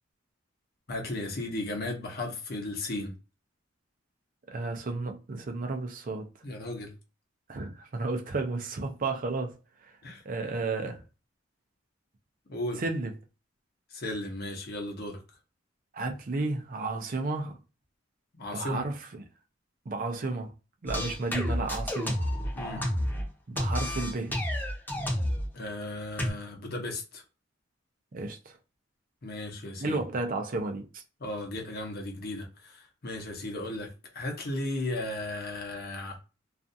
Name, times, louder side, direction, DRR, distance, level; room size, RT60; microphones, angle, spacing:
voice 1, 0.9-3.1 6.4-6.9 10.0-10.2 12.5-12.8 13.9-15.2 18.3-18.8 20.9-21.1 22.5-22.9 25.5-27.2 29.2-30.0 31.2-36.2, left 1 dB, 55° left, 0.7 m, -35 dB
voice 2, 4.5-6.3 7.5-9.6 9.8-10.0 10.2-11.0 12.8-13.1 15.9-17.6 18.5-19.2 19.9-20.5 20.8-22.2 23.5-24.4 28.1-28.6 29.8-31.0, right 3 dB, 45° right, 0.5 m, -32 dB
sound 1, 20.9-23.3 23.6-25.5 26.2-26.3, left 1 dB, 10° left, 0.7 m, -30 dB
2.4 x 2.3 x 2.6 m
head